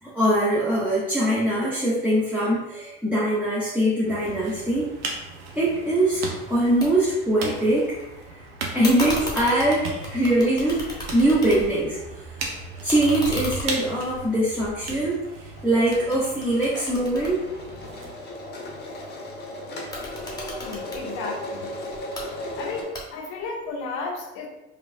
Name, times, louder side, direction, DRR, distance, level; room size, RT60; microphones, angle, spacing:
voice 1, 0.0-4.9 5.5-7.9 8.7-10.9 11.1-12.0 12.8-15.2 15.6-17.4 19.6-19.8 20.1-20.2, right 1 dB, 5° right, -8 dB, 1.0 m, -22 dB
sound 1, 4.0-18.1, right 4 dB, 70° right, 0.8 m, -37 dB
sound 2, 6.8-6.9 7.2-8.0 8.8-11.9 12.2-15.5 15.9-18.1 19.8-21.0 21.9-22.3 22.9-23.4, left 1 dB, 10° left, 1.3 m, -35 dB
sound 3, 14.1-14.4 14.7-14.8 15.0-22.8, left 1 dB, 35° left, 1.0 m, -37 dB
voice 2, 20.6-21.7 22.6-24.5, left 4 dB, 65° left, -1 dB, 0.9 m, -33 dB
5.0 x 2.4 x 2.6 m, 1.0 s
hypercardioid pair, 65°, 31 cm